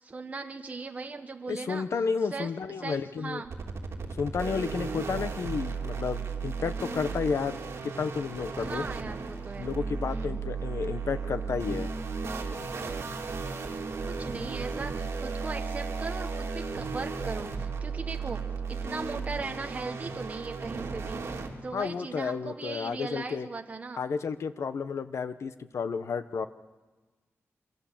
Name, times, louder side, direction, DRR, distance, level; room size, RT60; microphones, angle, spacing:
voice 1, 0.0-1.8 2.3-2.5 2.8-3.5 8.6-9.7 10.1-10.4 13.1-13.5 14.0-24.0, right 3 dB, 30° right, 4 dB, 1.4 m, -38 dB
voice 2, 1.5-3.4 4.2-8.9 9.6-11.9 21.7-23.5 24.0-26.5, left 5 dB, 70° left, 11 dB, 1.1 m, -32 dB
sound 1, 3.5-21.5, right 4 dB, 60° right, 3.4 m, -35 dB
26.0 x 25.5 x 7.4 m, 1.3 s
wide cardioid pair, 175°, 5 cm